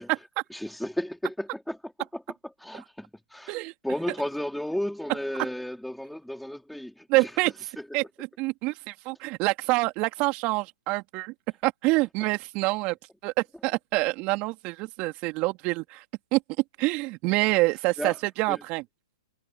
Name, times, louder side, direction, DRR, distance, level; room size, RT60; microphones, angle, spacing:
voice 1, 0.0-2.2 2.6-7.9 18.0-18.2 18.5-18.6, left 1 dB, ahead, 2.9 m, -34 dB
voice 2, 7.1-7.5 7.9-8.0 8.4-11.3 11.6-13.0 13.2-16.0 16.3-16.4 16.8-18.8, right 23 dB, 35° right, 2.9 m, -26 dB
hypercardioid pair, 125°, 3 cm